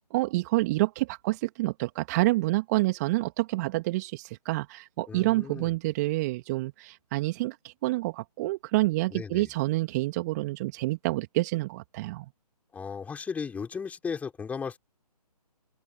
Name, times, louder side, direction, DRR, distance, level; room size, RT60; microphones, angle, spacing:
voice 1, 0.1-12.3, right 20 dB, 25° right, 2.1 m, -28 dB
voice 2, 5.1-5.8 9.1-9.5 12.7-14.8, left 6 dB, 5° left, 5.3 m, -36 dB
open air
figure-of-eight pair, 140°, 20 cm